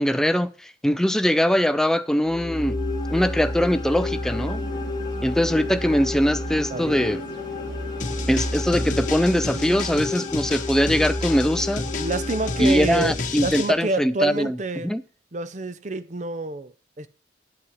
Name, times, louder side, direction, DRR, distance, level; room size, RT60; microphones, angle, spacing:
voice 1, 0.0-2.8 3.1-4.6 5.2-7.2 8.3-11.8 12.6-14.6 14.8-15.0, equal, 5° left, 0.4 m, -22 dB
sound 1, 2.3-13.6, left 2 dB, 20° left, 1.4 m, -30 dB
sound 2, 4.3-10.2, right 1 dB, 70° right, 2.1 m, -41 dB
voice 2, 6.7-7.2 12.0-14.9 15.3-17.1, right 2 dB, 40° right, 0.6 m, -28 dB
sound 3, 8.0-13.7, left 4 dB, 40° left, 1.0 m, -32 dB
9.5 x 8.5 x 4.9 m
head